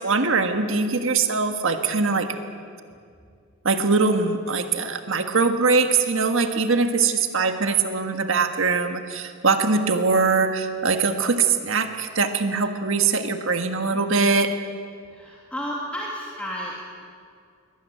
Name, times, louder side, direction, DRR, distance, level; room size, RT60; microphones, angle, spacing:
voice 1, 0.0-2.3 3.6-14.5, right 4 dB, 70° right, 6 dB, 1.6 m, -22 dB
voice 2, 15.1-16.8, equal, 5° left, -4 dB, 2.9 m, -32 dB
22.0 x 19.5 x 9.2 m, 2.3 s
head